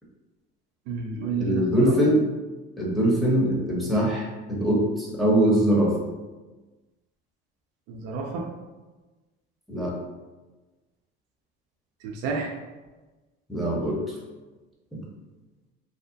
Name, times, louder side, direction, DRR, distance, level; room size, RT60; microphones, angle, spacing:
voice 1, 0.9-2.0 7.9-8.5 12.0-12.5, right 4 dB, 70° right, 1 dB, 0.5 m, -30 dB
voice 2, 1.4-2.2 2.8-5.9 9.7-9.9 13.5-14.0 14.9-15.0, right 1 dB, ahead, -4 dB, 0.9 m, -22 dB
2.7 x 2.0 x 2.6 m, 1.2 s
hypercardioid pair, 75°, 31 cm